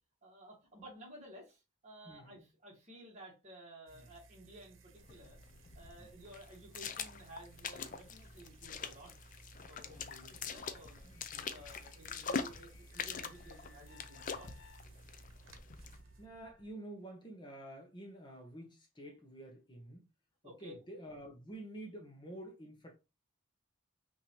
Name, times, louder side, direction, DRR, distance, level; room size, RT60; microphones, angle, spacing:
voice 1, 0.2-5.4 5.8-9.1 9.7-11.1 11.4-14.5 20.4-20.8, right 1 dB, 35° right, 2.0 m, -54 dB
voice 2, 2.0-2.4 6.0-6.1 10.2-10.4 11.0-11.5 16.2-20.0 20.4-22.9, right 1 dB, 25° left, 1.0 m, -49 dB
sound 1, 3.9-16.3, right 3 dB, 85° right, 1.0 m, -59 dB
sound 2, 5.0-16.0, left 5 dB, 40° left, 0.5 m, -44 dB
sound 3, 10.5-16.7, left 4 dB, 80° left, 0.8 m, -63 dB
5.8 x 2.8 x 3.1 m
head